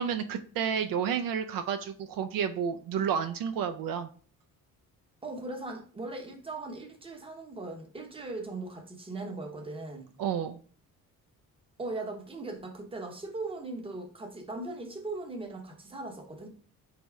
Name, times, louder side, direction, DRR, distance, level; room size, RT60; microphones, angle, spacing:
voice 1, 0.0-4.1 10.2-10.6, right 7 dB, 70° right, 0.5 m, -30 dB
voice 2, 5.2-10.1 11.8-16.5, right 2 dB, 15° right, 0.7 m, -39 dB
4.1 x 3.4 x 3.5 m
cardioid pair, 150°, 35 cm